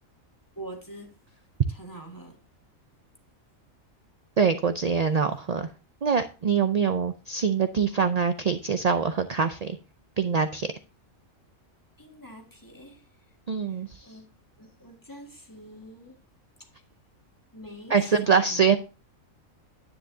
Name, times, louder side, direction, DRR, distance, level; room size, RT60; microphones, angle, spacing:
voice 1, 0.6-1.2 1.7-2.4 12.0-13.1 13.7-14.2 14.6-16.2 17.5-18.0 18.2-18.6, right 1 dB, 15° left, 1.8 m, -44 dB
voice 2, 4.4-5.7 6.0-9.8 10.2-10.7 13.5-14.1 17.9-18.8, right 6 dB, 50° right, 0.4 m, -24 dB
10.0 x 9.7 x 2.7 m
omnidirectional pair, 1.4 m